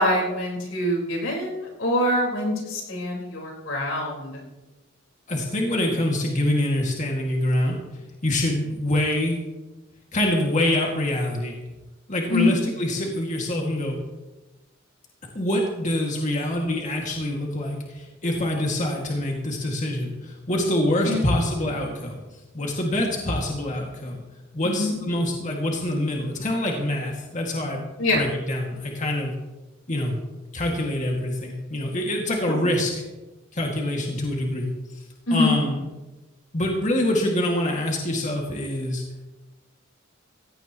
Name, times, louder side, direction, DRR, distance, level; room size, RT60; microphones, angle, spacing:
voice 1, 0.0-4.4 12.3-12.5 21.0-21.2 24.6-24.9 28.0-28.2 32.5-32.6 35.3-35.5, left 1 dB, 90° left, -1 dB, 4.5 m, -24 dB
voice 2, 5.3-7.8 8.2-9.4 10.1-11.6 12.1-14.0 15.3-22.2 22.5-24.2 24.5-27.8 28.1-29.3 29.9-30.1 30.5-33.0 33.5-34.7 35.3-35.8 36.5-39.0, left 1 dB, 40° left, 0 dB, 2.1 m, -25 dB
16.5 x 16.0 x 3.0 m, 1.1 s
head